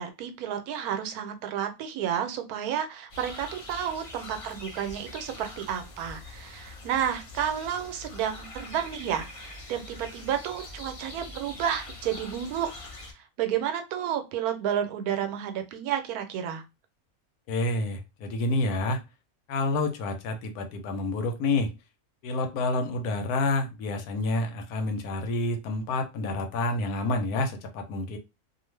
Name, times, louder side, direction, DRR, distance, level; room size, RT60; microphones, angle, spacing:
voice 1, 0.0-12.7 13.1-16.6, right 9 dB, 85° right, 8 dB, 1.1 m, -31 dB
sound 1, 3.1-13.1, left 2 dB, 40° left, 0.5 m, -44 dB
voice 2, 17.5-19.0 19.5-21.7 22.2-28.2, left 2 dB, 90° left, 5 dB, 1.2 m, -28 dB
2.4 x 2.4 x 3.1 m, 0.25 s
omnidirectional pair, 1.5 m